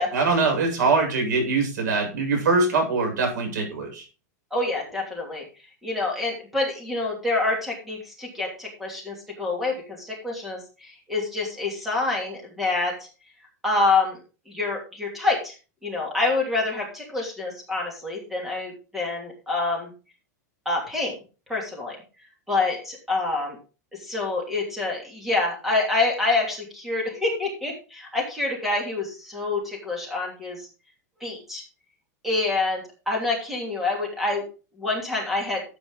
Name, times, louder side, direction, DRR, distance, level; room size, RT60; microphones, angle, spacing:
voice 1, 0.1-4.0, right 3 dB, 90° right, 3 dB, 7.4 m, -23 dB
voice 2, 4.5-5.4 5.8-13.1 13.6-14.2 14.5-15.5 15.8-19.9 20.6-21.1 21.5-22.0 22.5-23.6 24.0-30.7 31.2-31.6 32.2-34.4 34.8-35.6, left 3 dB, ahead, -1 dB, 2.9 m, -27 dB
12.5 x 8.6 x 3.9 m, 0.34 s
supercardioid pair, 165°, 9 cm